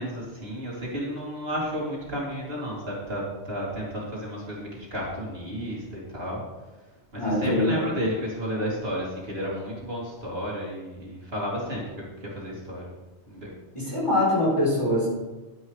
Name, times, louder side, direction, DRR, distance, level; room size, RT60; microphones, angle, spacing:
voice 1, 0.0-6.4 7.1-11.8 12.2-12.9 13.3-13.6, equal, 60° right, -4 dB, 3.0 m, -32 dB
voice 2, 7.2-7.9 13.7-15.1, left 1 dB, 25° left, -5 dB, 3.7 m, -23 dB
11.5 x 10.0 x 3.2 m, 1.2 s
omnidirectional pair, 1.2 m